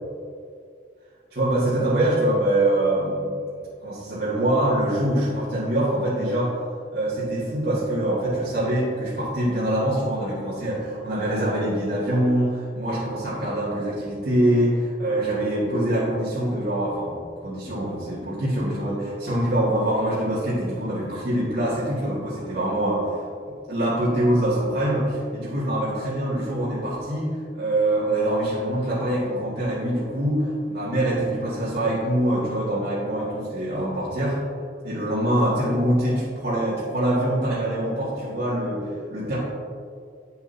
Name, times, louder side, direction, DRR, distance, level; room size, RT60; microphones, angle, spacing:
voice 1, 1.3-3.4 3.8-6.5 6.9-23.1 23.7-34.4 34.8-39.4, right 1 dB, 65° right, -9 dB, 1.9 m, -24 dB
8.9 x 7.8 x 2.7 m, 2.2 s
head